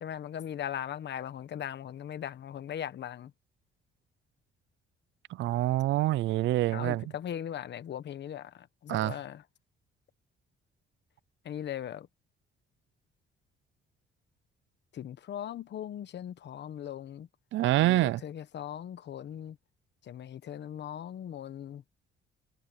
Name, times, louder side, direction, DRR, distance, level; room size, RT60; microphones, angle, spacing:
voice 1, 0.0-3.3 6.7-9.4 11.4-12.1 14.9-17.3 17.8-19.6 20.0-21.8, left 10 dB, 60° left, 1.2 m, -39 dB
voice 2, 5.3-7.0 8.9-9.1 17.5-18.2, right 15 dB, 70° right, 0.4 m, -26 dB
cardioid pair, 90°, 20 cm